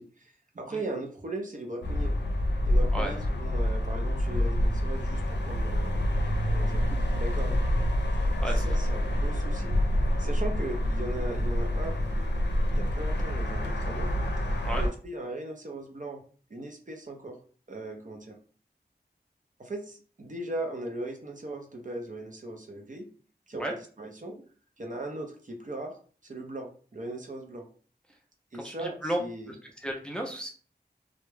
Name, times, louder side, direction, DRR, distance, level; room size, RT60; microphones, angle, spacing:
voice 1, 0.0-2.1 2.6-6.0 6.4-6.8 7.1-7.6 8.5-9.7 10.2-12.0 12.8-14.1 14.7-16.2 16.5-17.4 17.7-18.4 19.6-23.1 23.5-24.4 24.8-27.7 28.5-29.5, right 2 dB, 45° right, 2 dB, 0.6 m, -38 dB
sound 1, 1.8-14.9, left 1 dB, 85° left, 0.5 m, -27 dB
voice 2, 8.2-8.7 14.6-14.9 23.6-23.7 28.6-29.2 29.5-29.6 29.8-30.5, right 1 dB, 5° left, 0 dB, 0.5 m, -33 dB
2.2 x 2.0 x 3.1 m, 0.41 s
wide cardioid pair, 60°, 18 cm